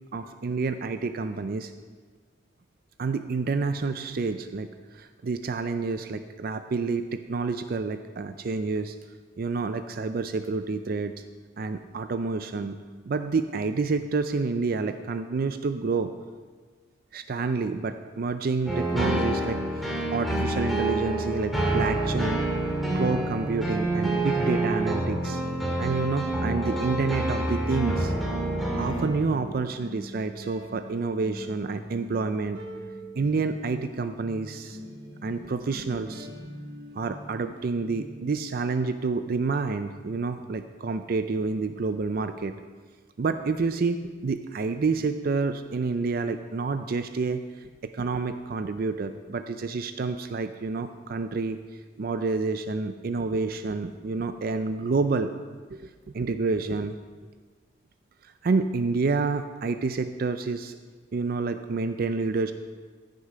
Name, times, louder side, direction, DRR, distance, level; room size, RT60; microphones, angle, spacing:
voice 1, 0.1-1.7 3.0-9.0 9.4-11.1 11.6-12.8 13.1-16.1 17.1-22.4 22.9-25.4 25.8-28.1 28.8-32.6 33.2-34.8 35.2-36.3 37.0-42.6 43.2-55.3 55.7-57.0 58.2-60.8 61.1-62.5, right 4 dB, 50° right, 9 dB, 0.4 m, -29 dB
sound 1, 18.7-29.1, right 1 dB, ahead, 2.0 m, -27 dB
sound 2, 25.4-38.4, equal, 90° right, 2.7 m, -43 dB
15.0 x 6.5 x 5.0 m, 1.5 s
head